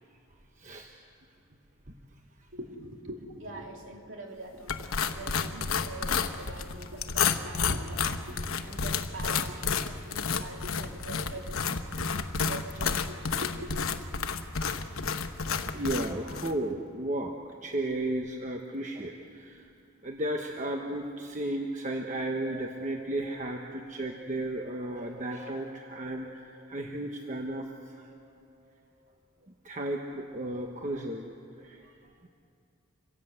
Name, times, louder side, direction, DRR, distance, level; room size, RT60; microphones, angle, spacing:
voice 1, 0.6-0.9 9.8-10.0 14.6-14.8 15.6-17.4 17.6-19.7 20.0-28.3 29.6-31.9, right 1 dB, 35° right, 2 dB, 1.2 m, -34 dB
voice 2, 2.5-11.6 12.1-13.8, right 2 dB, 60° right, 1 dB, 3.3 m, -44 dB
sound 1, 4.7-16.5, left 5 dB, 75° left, 1.1 m, -31 dB
26.5 x 17.0 x 8.0 m, 2.4 s
head